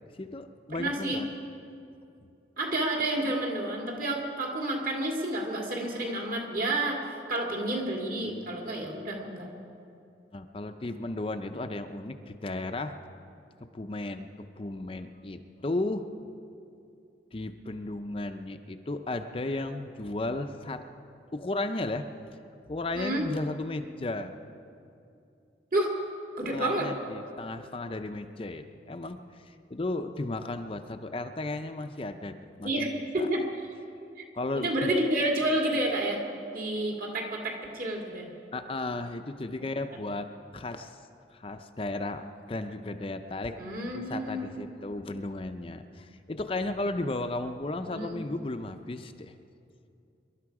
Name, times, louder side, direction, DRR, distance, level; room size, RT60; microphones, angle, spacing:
voice 1, 0.1-1.3 10.3-13.0 13.7-14.3 14.6-16.1 17.3-20.8 21.3-22.1 22.7-24.3 26.5-32.9 33.2-33.3 34.3-34.9 38.5-40.3 40.5-41.0 41.3-43.6 43.9-49.3, left 2 dB, 30° left, 7 dB, 0.5 m, -34 dB
voice 2, 0.7-1.2 2.6-9.5 22.9-23.3 25.7-25.9 26.4-26.9 32.6-33.4 34.5-36.2 36.5-38.3 43.6-44.7 47.9-48.2, right 1 dB, 50° right, 0 dB, 2.5 m, -30 dB
24.5 x 12.0 x 4.8 m, 2.6 s
head